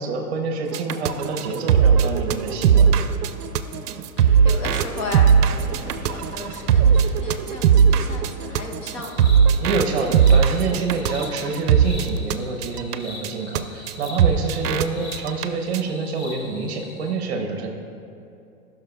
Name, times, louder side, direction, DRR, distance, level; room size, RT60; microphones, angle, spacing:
voice 1, 0.0-2.9 9.6-17.7, right 4 dB, 45° right, 4 dB, 0.9 m, -27 dB
sound 1, 0.7-12.3 12.6-13.0 13.2-13.3 13.6-13.7 13.9-14.0 14.2-14.9 15.1-15.5 15.7-15.8, right 7 dB, 90° right, 0.6 m, -18 dB
voice 2, 3.7-9.3 15.8-16.2, left 2 dB, 20° left, 1 dB, 0.5 m, -35 dB
sound 2, 5.3-8.1, right 1 dB, 15° right, 1.9 m, -42 dB
sound 3, 9.0-17.1, left 2 dB, 45° left, 1.8 m, -41 dB
14.5 x 6.0 x 2.3 m, 2.6 s
hypercardioid pair, 150°, 45 cm